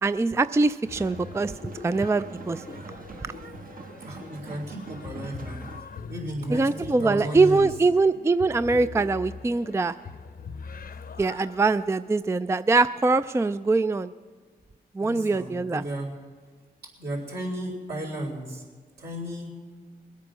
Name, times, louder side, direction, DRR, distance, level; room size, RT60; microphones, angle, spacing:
voice 1, 0.0-1.5 1.8-2.8 6.5-9.9 11.2-14.1 15.0-15.8, right 3 dB, 15° right, 13 dB, 0.4 m, -23 dB
sound 1, 0.8-5.8, right 3 dB, 55° right, 1.1 m, -43 dB
sound 2, 0.9-12.0, left 5 dB, 60° left, 0.8 m, -43 dB
voice 2, 4.0-5.6 6.1-7.7 15.0-16.1 17.0-18.6 19.0-19.5, right 1 dB, 70° right, -2 dB, 4.2 m, -34 dB
21.0 x 8.4 x 6.3 m, 1.5 s
cardioid pair, 50°, 17 cm